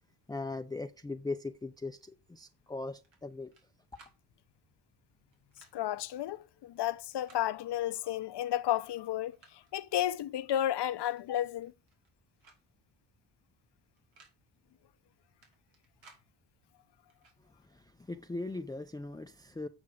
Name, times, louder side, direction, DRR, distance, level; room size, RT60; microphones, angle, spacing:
voice 1, 0.3-3.5 17.7-19.7, left 3 dB, 10° left, 0.4 m, -39 dB
sound 1, 3.0-3.7 3.9-4.2 5.3-5.8 7.0-7.5 8.5-8.6 9.1-9.7 11.1-11.3 11.5-12.1 12.4-12.6 12.9-13.0 14.0-14.4 15.4-16.3 17.1-17.4, right 4 dB, 90° right, 2.8 m, -61 dB
voice 2, 5.7-11.7, left 12 dB, 65° left, 0.7 m, -32 dB
8.6 x 5.1 x 4.9 m
cardioid pair, 80°, 44 cm